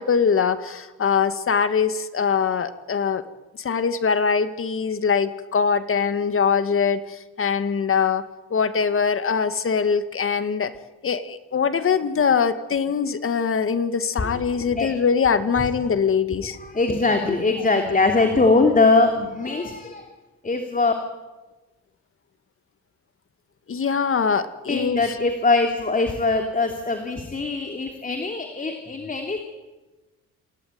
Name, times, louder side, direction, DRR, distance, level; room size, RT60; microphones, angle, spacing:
voice 1, 0.0-3.2 3.6-8.2 8.5-10.7 11.0-16.6 23.7-25.0, left 6 dB, 45° left, 11 dB, 2.0 m, -22 dB
voice 2, 14.2-14.9 15.8-15.9 16.6-20.1 20.4-20.9 24.7-29.4, left 3 dB, 25° left, 4 dB, 3.1 m, -22 dB
28.0 x 17.5 x 9.5 m, 1.2 s
cardioid pair, 90°, 30 cm